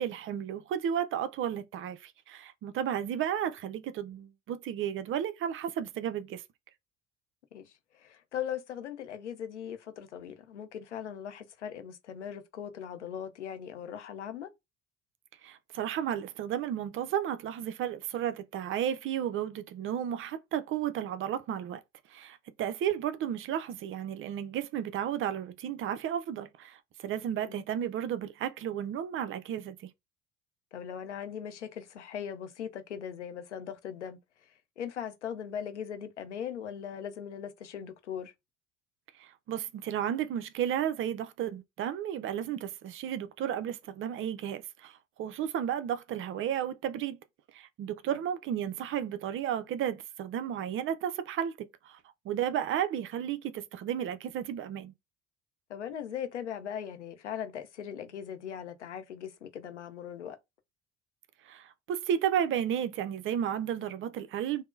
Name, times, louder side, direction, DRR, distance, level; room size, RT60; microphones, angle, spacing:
voice 1, 0.0-6.4 15.4-21.8 22.1-29.9 39.2-47.2 47.5-52.0 52.2-54.9 61.4-64.6, right 9 dB, 40° right, 0.4 m, -33 dB
voice 2, 7.5-14.5 27.4-27.6 30.7-34.5 34.8-38.3 55.7-60.4, left 8 dB, 85° left, 0.5 m, -39 dB
3.5 x 2.0 x 2.4 m
figure-of-eight pair, 55°, 35 cm